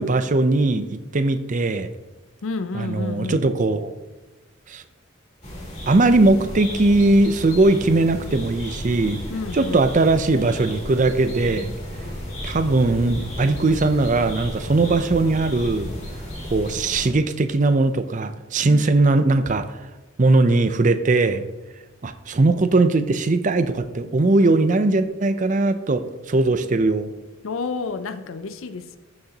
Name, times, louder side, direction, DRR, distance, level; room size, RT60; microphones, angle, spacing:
voice 1, 0.0-1.9 2.7-3.9 4.7-4.8 5.9-9.2 9.5-11.7 12.4-15.9 16.5-19.7 20.2-21.4 22.0-27.1, right 2 dB, 40° right, 10 dB, 0.5 m, -19 dB
voice 2, 2.4-3.5 9.3-9.8 18.7-19.1 27.4-29.0, left 4 dB, 70° left, 11 dB, 0.5 m, -30 dB
sound 1, 5.4-17.1, equal, 35° left, 2.7 m, -34 dB
13.0 x 6.5 x 2.9 m, 1.1 s
head